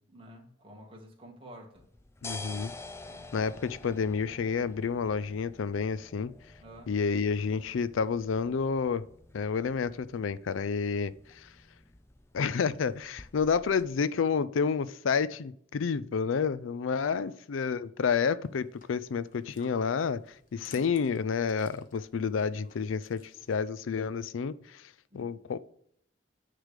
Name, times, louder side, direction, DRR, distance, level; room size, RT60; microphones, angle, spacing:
voice 1, 0.1-1.8 3.0-3.3 6.6-6.9 17.0-17.3 25.1-25.4, equal, 30° right, 1.8 m, -50 dB
sound 1, 1.8-13.9, left 2 dB, 15° left, 0.4 m, -49 dB
voice 2, 2.2-2.7 3.3-6.3 6.9-9.0 9.3-11.5 12.3-24.8 25.1-25.6, left 5 dB, 85° left, 0.4 m, -30 dB
sound 2, 18.4-23.6, left 3 dB, 45° left, 1.0 m, -56 dB
9.6 x 3.4 x 6.6 m
head